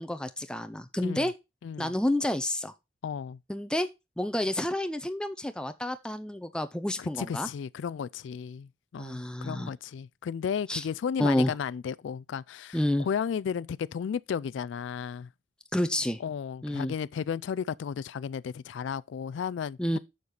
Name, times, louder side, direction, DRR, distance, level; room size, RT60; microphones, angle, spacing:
voice 1, 0.0-1.3 1.8-2.7 3.5-3.9 4.2-7.5 9.0-9.7 10.7-10.8 11.2-11.5 12.7-13.1 15.7-16.2 16.6-16.9 19.8-20.0, left 1 dB, 5° left, 0.5 m, -29 dB
voice 2, 1.6-1.9 3.0-3.4 7.0-15.3 16.2-20.0, left 7 dB, 75° left, 0.3 m, -34 dB
6.9 x 6.6 x 3.9 m
head